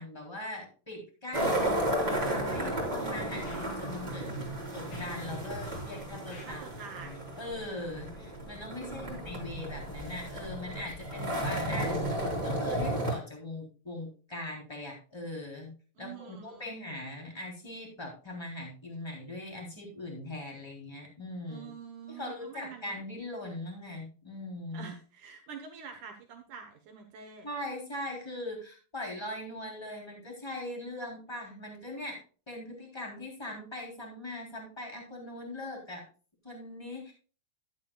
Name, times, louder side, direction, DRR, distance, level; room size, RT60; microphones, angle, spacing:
voice 1, 0.0-4.3 4.7-6.7 7.0-12.0 12.4-15.7 16.0-21.7 22.1-24.9 27.4-32.2 32.5-36.0 36.4-37.1, left 1 dB, 5° left, -1 dB, 2.6 m, -40 dB
sound 1, 1.3-13.1, right 1 dB, 10° right, 2.6 m, -33 dB
Scratching (performance technique), 1.4-1.6 1.9-2.5 2.8-2.9 3.4-3.6 4.2-4.4 4.8-5.8 6.2-6.5, left 2 dB, 55° left, 5.1 m, -49 dB
voice 2, 6.4-7.2 8.7-9.6 16.0-16.7 21.5-22.9 24.7-27.5, right 6 dB, 80° right, 3 dB, 1.8 m, -46 dB
12.0 x 10.5 x 2.3 m, 0.36 s
omnidirectional pair, 5.3 m